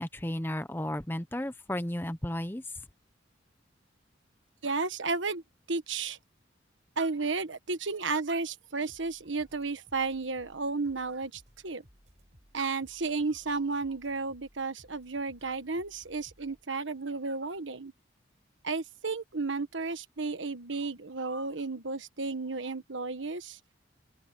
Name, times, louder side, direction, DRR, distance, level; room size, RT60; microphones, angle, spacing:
voice 1, 0.0-2.6, left 1 dB, 10° left, 0.8 m, -33 dB
voice 2, 4.6-5.4 5.7-6.2 7.0-11.8 12.5-17.9 18.6-23.6, right 3 dB, 80° right, 1.4 m, -33 dB
sound 1, 8.9-16.6, equal, 35° right, 7.4 m, -61 dB
open air
head